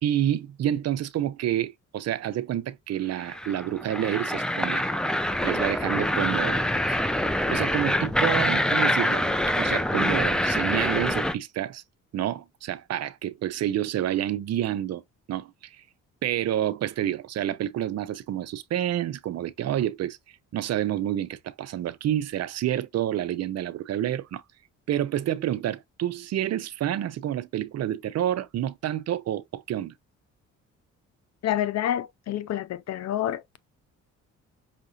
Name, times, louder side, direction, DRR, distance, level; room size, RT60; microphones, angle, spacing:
voice 1, 0.0-4.9 5.4-7.0 7.5-11.8 12.1-15.0 15.3-15.8 16.2-20.2 20.5-24.4 24.9-29.9, right 11 dB, 60° right, 0.5 m, -29 dB
sound 1, 3.2-11.3, left 1 dB, 5° left, 0.4 m, -25 dB
voice 2, 31.4-33.4, left 11 dB, 60° left, 0.6 m, -28 dB
5.6 x 2.6 x 2.5 m
cardioid pair, 90°, 30 cm